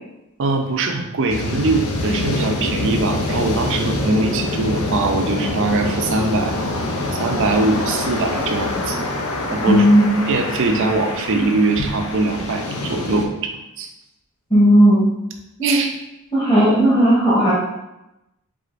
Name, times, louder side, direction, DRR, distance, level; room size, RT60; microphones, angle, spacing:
voice 1, 0.4-6.6 7.2-9.0 9.5-9.9 10.3-13.9 15.6-15.9, right 3 dB, 60° right, 4 dB, 0.5 m, -21 dB
sound 1, 1.3-13.3, left 2 dB, 85° left, 0.7 m, -25 dB
voice 2, 9.7-10.2 14.5-15.0 15.6-15.8 16.3-17.5, equal, 25° left, -8 dB, 1.1 m, -14 dB
4.8 x 3.6 x 2.5 m, 0.91 s
head